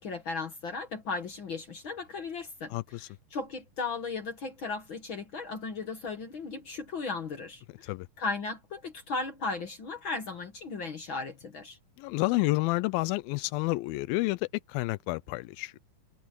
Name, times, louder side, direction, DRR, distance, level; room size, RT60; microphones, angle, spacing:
voice 1, 0.0-2.7 3.3-7.9 8.2-11.8, left 4 dB, 50° left, 1.7 m, -36 dB
voice 2, 2.7-3.1 7.8-8.1 12.0-15.8, left 22 dB, 85° left, 2.4 m, -30 dB
omnidirectional pair, 4.2 m